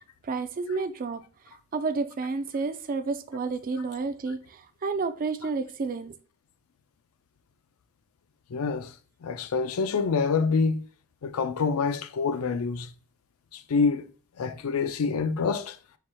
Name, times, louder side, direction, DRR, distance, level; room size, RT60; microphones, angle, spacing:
voice 1, 0.2-1.2 1.7-6.2, right 4 dB, 40° right, 0.4 m, -30 dB
voice 2, 8.5-8.9 9.2-10.8 11.2-12.9 13.5-14.1 14.4-15.8, left 5 dB, 70° left, 0.4 m, -26 dB
4.7 x 4.2 x 2.2 m
head